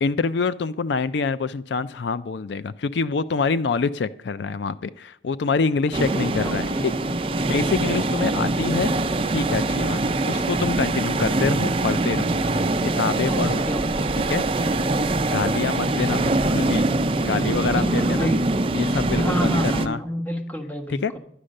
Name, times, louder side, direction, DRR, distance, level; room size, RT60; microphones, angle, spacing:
voice 1, 0.0-6.9 7.5-8.9 9.3-12.4 12.8-13.7 14.3-14.4 15.3-16.9 17.2-18.3 18.7-20.0 20.9-21.1, left 4 dB, 75° left, 15 dB, 0.4 m, -26 dB
sound 1, 5.9-19.9, right 2 dB, 30° right, 0.5 m, -23 dB
voice 2, 6.4-6.9 13.3-14.3 15.7-15.9 17.5-18.4 19.1-21.2, equal, 10° left, 5 dB, 1.2 m, -30 dB
11.0 x 10.0 x 6.5 m, 0.69 s
head